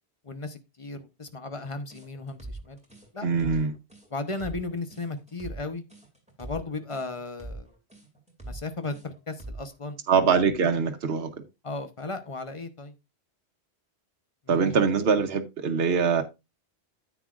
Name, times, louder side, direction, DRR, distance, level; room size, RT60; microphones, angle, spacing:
voice 1, 0.2-2.8 3.1-3.5 4.1-5.8 6.4-7.7 8.4-10.0 11.6-12.9 14.4-14.7, left 3 dB, 30° left, 0.9 m, -35 dB
sound 1, 1.9-9.8, right 2 dB, 5° right, 2.4 m, -42 dB
voice 2, 3.2-3.8 10.1-11.3 14.5-16.2, right 6 dB, 65° right, 1.1 m, -23 dB
9.7 x 8.2 x 2.4 m
omnidirectional pair, 1.1 m